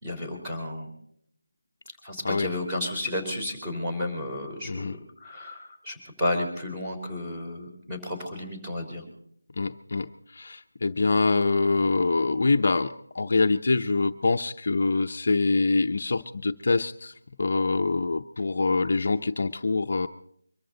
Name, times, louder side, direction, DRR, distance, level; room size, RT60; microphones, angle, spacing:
voice 1, 0.0-0.9 2.0-9.0, left 1 dB, 10° right, -1 dB, 3.7 m, -32 dB
voice 2, 9.6-17.1 17.4-20.1, left 3 dB, 50° left, 7 dB, 0.7 m, -25 dB
24.0 x 14.0 x 3.9 m, 0.70 s
figure-of-eight pair, 165°, 0 cm